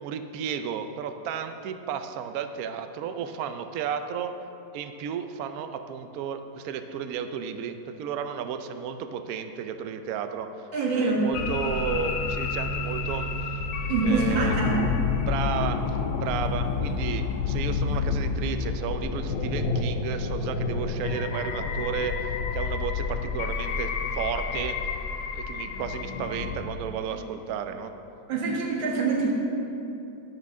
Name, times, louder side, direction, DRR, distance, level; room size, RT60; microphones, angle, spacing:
voice 1, 0.0-4.3 4.7-13.7 14.0-14.6 15.2-24.9 25.3-27.9, right 7 dB, 75° right, 8 dB, 0.8 m, -33 dB
voice 2, 10.7-11.2 13.9-14.8 28.3-29.3, right 3 dB, 90° right, -2 dB, 2.2 m, -25 dB
sound 1, 11.3-26.6, left 5 dB, 75° left, 1.3 m, -29 dB
10.0 x 9.6 x 3.6 m, 2.9 s
omnidirectional pair, 2.0 m